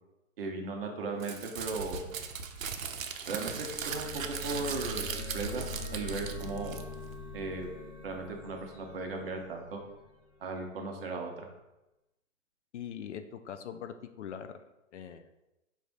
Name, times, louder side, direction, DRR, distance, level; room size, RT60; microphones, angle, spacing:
voice 1, 0.4-2.1 3.2-5.1 5.3-6.7 7.3-7.7 8.0-9.8 10.4-11.5, right 3 dB, 45° right, 2 dB, 0.8 m, -37 dB
Crumpling crinkling, 1.2-7.1, right 6 dB, 85° right, 0.7 m, -38 dB
sound 1, 3.4-10.0, left 2 dB, 35° left, 1.0 m, -43 dB
voice 2, 12.7-14.6 14.9-15.3, left 8 dB, 65° left, 9 dB, 0.5 m, -42 dB
4.9 x 2.6 x 3.4 m, 0.96 s
hypercardioid pair, 160°, 40 cm